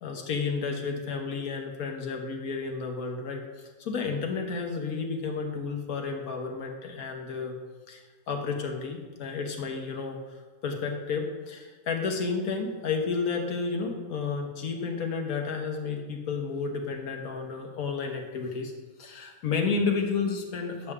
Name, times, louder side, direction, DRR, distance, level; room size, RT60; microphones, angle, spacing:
voice 1, 0.0-3.4 3.8-7.6 7.9-10.2 10.6-18.7 19.0-20.9, left 5 dB, 80° left, 3 dB, 1.5 m, -31 dB
9.5 x 6.7 x 3.6 m, 1.4 s
omnidirectional pair, 1.5 m